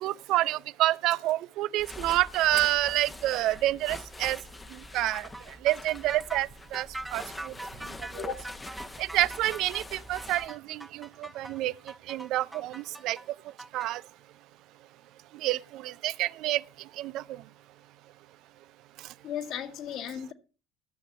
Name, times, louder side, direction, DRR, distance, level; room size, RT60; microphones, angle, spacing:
voice 1, 0.0-4.4 4.7-7.5 8.1-8.3 9.0-11.7 12.1-13.2 13.7-14.0 15.3-16.6 17.0-17.4, right 15 dB, 60° right, 0.4 m, -28 dB
sound 1, 1.8-10.5, left 2 dB, 15° left, 1.0 m, -44 dB
sound 2, 5.3-13.9, right 2 dB, 10° right, 0.7 m, -42 dB
voice 2, 19.2-20.3, left 9 dB, 60° left, 1.9 m, -35 dB
13.0 x 6.7 x 5.6 m
hypercardioid pair, 85°, 0 cm